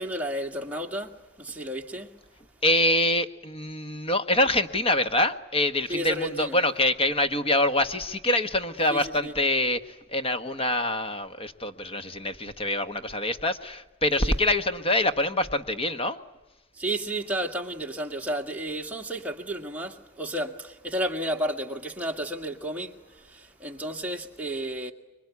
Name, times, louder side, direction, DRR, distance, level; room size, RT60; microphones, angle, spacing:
voice 1, 0.0-2.2 5.9-6.6 8.9-9.3 14.2-14.3 16.8-24.9, right 1 dB, 5° right, 2.1 m, -32 dB
voice 2, 2.6-16.2, left 1 dB, 30° left, 1.3 m, -25 dB
26.0 x 23.5 x 9.5 m
head